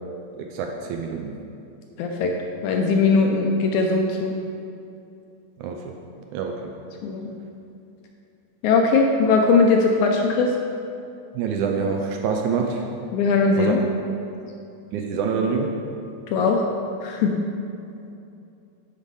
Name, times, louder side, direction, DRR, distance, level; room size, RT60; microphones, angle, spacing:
voice 1, 0.4-1.4 5.6-5.9 6.3-6.7 11.3-12.9 13.6-13.8 14.9-15.8, right 5 dB, 80° right, 2 dB, 1.9 m, -26 dB
voice 2, 2.0-2.3 2.6-4.3 7.0-7.3 8.6-10.5 13.1-13.8 16.3-16.6 17.0-17.4, left 4 dB, 80° left, 2 dB, 1.8 m, -19 dB
8.1 x 5.0 x 5.4 m, 2.6 s
omnidirectional pair, 3.8 m